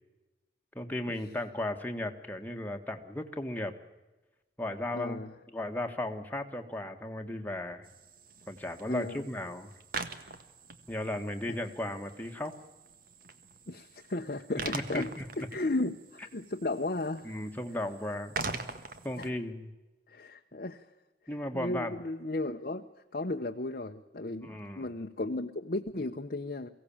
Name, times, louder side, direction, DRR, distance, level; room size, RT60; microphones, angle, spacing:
voice 1, 0.7-3.7 4.6-5.2 5.5-7.9 8.5-9.7 10.9-12.5 14.7-15.2 17.2-18.3 19.0-19.7 21.3-21.9 24.4-24.9, left 1 dB, 10° left, 3 dB, 1.6 m, -35 dB
voice 2, 4.9-5.3 8.9-9.3 11.5-11.6 13.7-17.4 19.2-19.4 20.1-20.9 21.5-22.9 23.1-26.7, left 2 dB, 50° left, 3 dB, 0.9 m, -35 dB
sound 1, 7.8-19.3, right 4 dB, 50° right, 1.5 m, -43 dB
23.5 x 16.5 x 8.7 m, 1.1 s
head